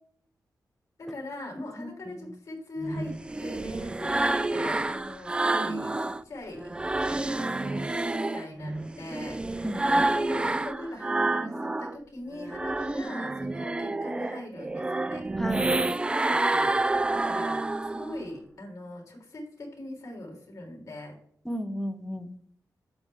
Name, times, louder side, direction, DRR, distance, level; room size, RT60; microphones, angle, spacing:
voice 1, 1.0-6.7 7.1-8.0 8.3-9.7 10.1-15.3 16.3-16.7 17.1-21.2, left 1 dB, 50° left, 0 dB, 3.7 m, -41 dB
voice 2, 1.6-2.3 9.6-10.1 15.4-15.7 21.4-22.3, equal, 5° left, 8 dB, 0.8 m, -35 dB
sound 1, 2.8-6.2 6.6-12.0 12.3-18.2, right 2 dB, 15° right, 0.3 m, -28 dB
11.5 x 7.8 x 3.6 m, 0.65 s
wide cardioid pair, 130°, 7 cm